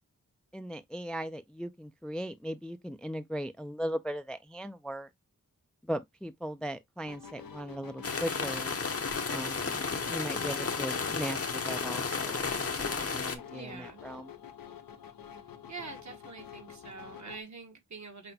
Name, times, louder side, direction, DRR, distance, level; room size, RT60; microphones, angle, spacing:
voice 1, 0.5-5.1 5.8-8.7 9.3-14.3, equal, 5° left, 0.3 m, -38 dB
sound 1, 7.0-17.4, left 7 dB, 85° left, 0.7 m, -48 dB
sound 2, 8.0-13.4, left 4 dB, 45° left, 0.8 m, -33 dB
voice 2, 13.5-14.0 15.7-18.3, right 4 dB, 55° right, 1.1 m, -45 dB
5.9 x 2.1 x 2.7 m
wide cardioid pair, 50°, 34 cm